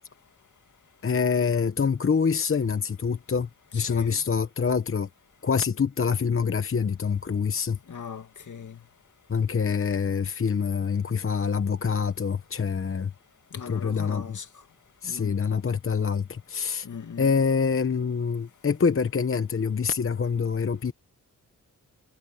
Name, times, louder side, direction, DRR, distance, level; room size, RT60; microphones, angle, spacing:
voice 1, 1.0-5.1 5.4-7.8 9.3-13.1 13.7-14.4 15.0-16.9 17.2-20.9, left 6 dB, 40° left, 1.0 m, -26 dB
voice 2, 3.7-4.2 7.9-8.8 13.5-14.5 15.0-15.4 16.8-17.4, left 6 dB, 60° left, 2.2 m, -39 dB
wide cardioid pair, 90°, 34 cm